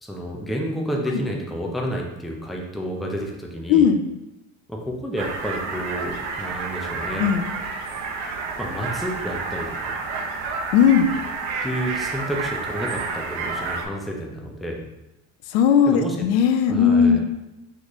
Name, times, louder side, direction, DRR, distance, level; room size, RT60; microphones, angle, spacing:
voice 1, 0.0-3.9 4.7-7.3 8.6-10.0 11.6-14.8 15.9-16.3 16.7-17.2, equal, ahead, -1 dB, 0.4 m, -30 dB
voice 2, 3.7-4.0 7.2-7.5 10.7-11.1 15.5-17.2, left 7 dB, 75° left, 8 dB, 0.5 m, -17 dB
sound 1, 5.2-13.9, right 4 dB, 75° right, 0.8 m, -30 dB
4.1 x 3.2 x 3.0 m, 0.94 s
supercardioid pair, 120°, 33 cm